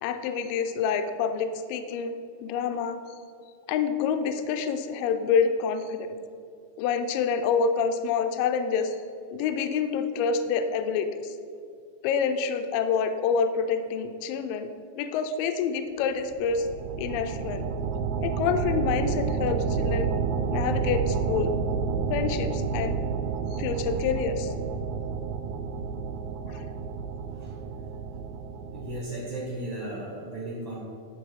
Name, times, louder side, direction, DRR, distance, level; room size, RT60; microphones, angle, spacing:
voice 1, 0.0-2.2 2.4-3.0 3.7-6.2 6.8-9.0 9.3-11.4 12.0-14.7 15.0-16.7 17.0-17.7 18.2-20.1 20.5-21.5 22.1-23.0 23.5-24.5 26.5-26.6, left 6 dB, 80° left, 8 dB, 2.1 m, -27 dB
sound 1, 16.2-29.0, right 5 dB, 85° right, 2.4 m, -30 dB
voice 2, 28.7-30.8, right 1 dB, 50° right, -7 dB, 2.2 m, -35 dB
10.5 x 4.7 x 4.7 m, 2.4 s
omnidirectional pair, 4.3 m